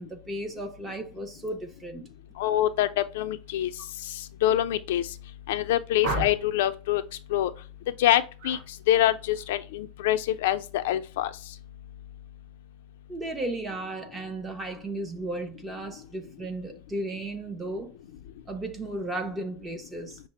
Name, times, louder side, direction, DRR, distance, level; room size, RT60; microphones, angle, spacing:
voice 1, 0.0-2.1 13.1-17.9 18.5-20.2, right 2 dB, 10° right, 0.6 m, -35 dB
voice 2, 2.4-3.7 4.1-5.1 5.5-7.0 7.3-7.5 8.0-8.6 8.9-11.3, left 12 dB, 80° left, 0.4 m, -25 dB
sound 1, 6.0-6.6 8.4-8.7 9.0-9.4, right 2 dB, 55° right, 1.8 m, -33 dB
5.7 x 2.0 x 4.2 m
supercardioid pair, 180°, 0 cm